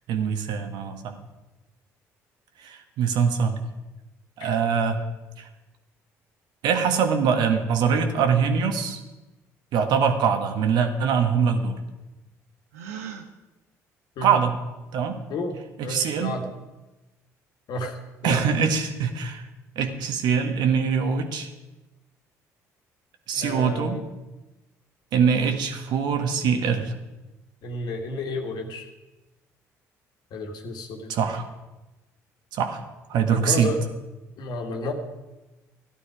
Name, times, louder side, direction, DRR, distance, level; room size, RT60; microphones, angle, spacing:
voice 1, 0.1-1.2 2.6-3.6 4.4-5.0 5.4-5.5 6.6-9.0 9.7-11.8 14.2-14.5 14.9-15.2 15.8-16.3 18.2-19.4 19.7-21.5 23.3-24.0 25.1-26.9 31.1-31.5 32.5-32.8 33.1-33.7, right 6 dB, 70° right, 6 dB, 1.6 m, -23 dB
Gasp, 12.7-13.3, right 8 dB, 90° right, 1.0 m, -37 dB
voice 2, 15.3-16.5 17.7-18.4 23.3-24.1 27.6-28.9 30.3-31.1 33.3-33.8 34.4-34.9, left 2 dB, 65° left, 4 dB, 2.0 m, -31 dB
14.0 x 11.5 x 5.0 m, 1.1 s
hypercardioid pair, 55°, 8 cm